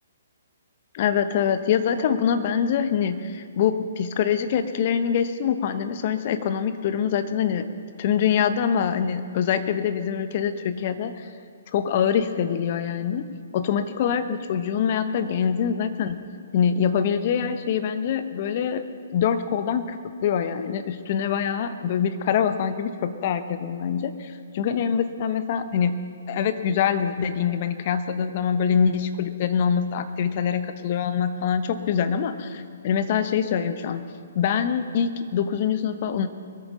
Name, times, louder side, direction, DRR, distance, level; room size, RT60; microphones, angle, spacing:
voice 1, 0.9-7.7 8.0-11.3 11.7-16.2 16.5-18.8 19.1-20.0 20.2-26.0 26.3-34.0 34.3-36.3, left 7 dB, 45° left, 10 dB, 1.0 m, -24 dB
22.0 x 8.9 x 5.7 m, 2.2 s
figure-of-eight pair, 130°, 0 cm